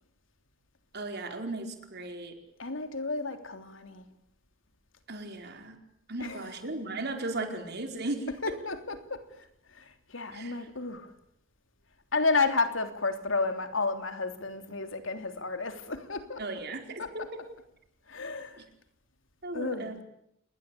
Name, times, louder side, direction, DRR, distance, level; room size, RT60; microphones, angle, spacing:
voice 1, 0.9-2.3 5.1-5.8 6.1-8.2 10.3-10.7 16.4-17.4 18.6-18.7 19.4-20.0, right 2 dB, 55° right, 5 dB, 4.8 m, -36 dB
voice 2, 2.6-4.0 6.2-6.4 8.4-9.2 9.8-9.9 10.1-11.1 12.1-16.4 17.0-17.1 18.1-18.6 19.5-19.9, left 3 dB, 75° left, 8 dB, 3.2 m, -31 dB
28.0 x 21.5 x 8.5 m, 0.76 s
head